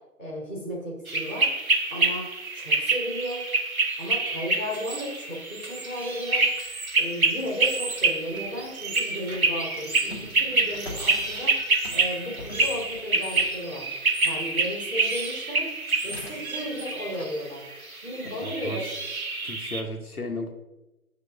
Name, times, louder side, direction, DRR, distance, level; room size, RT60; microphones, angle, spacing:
voice 1, 0.2-1.5 1.9-2.3 2.5-3.5 4.0-6.5 7.0-11.5 11.9-13.8 14.2-15.7 16.0-17.6 18.0-18.8, equal, 5° left, -19 dB, 1.2 m, -34 dB
sound 1, 1.1-19.8, right 3 dB, 60° right, 1.1 m, -27 dB
sound 2, 6.0-8.8 9.3-13.7 15.4-15.5 16.0-17.2, left 1 dB, 40° left, 0.8 m, -45 dB
voice 2, 18.4-18.8 19.4-20.5, left 1 dB, 65° left, 4 dB, 1.0 m, -34 dB
6.2 x 3.0 x 5.7 m, 0.99 s
figure-of-eight pair, 155°, 47 cm